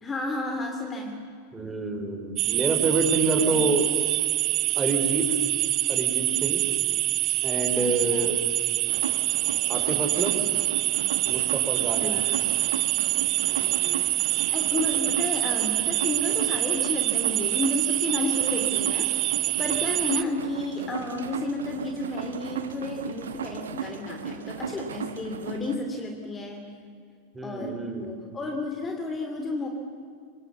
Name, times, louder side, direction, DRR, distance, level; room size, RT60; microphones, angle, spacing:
voice 1, 0.0-1.2 3.4-3.6 7.8-8.3 12.0-12.5 13.5-19.2 19.6-26.7 27.4-29.7, left 2 dB, 15° left, 3 dB, 3.0 m, -32 dB
voice 2, 1.5-3.8 4.8-5.4 5.9-6.7 7.4-8.4 9.7-10.4 11.3-12.2 27.3-28.1, right 2 dB, 15° right, 4 dB, 5.2 m, -27 dB
sound 1, 2.4-20.2, right 17 dB, 35° right, 0.6 m, -25 dB
sound 2, 8.9-25.8, right 7 dB, 65° right, 1.5 m, -36 dB
27.0 x 24.0 x 8.3 m, 2.2 s
figure-of-eight pair, 90°, 0 cm